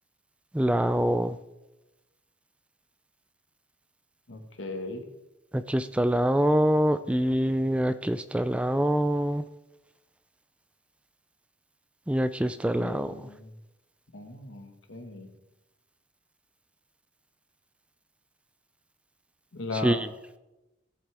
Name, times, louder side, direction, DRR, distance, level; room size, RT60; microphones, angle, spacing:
voice 1, 0.5-1.4 5.5-9.4 12.1-13.1 19.8-20.1, right 1 dB, 5° right, 12 dB, 0.3 m, -25 dB
voice 2, 4.3-5.0 12.7-13.5 14.1-15.3 19.5-20.0, left 2 dB, 90° left, 5 dB, 1.5 m, -37 dB
17.0 x 7.4 x 3.4 m, 0.99 s
head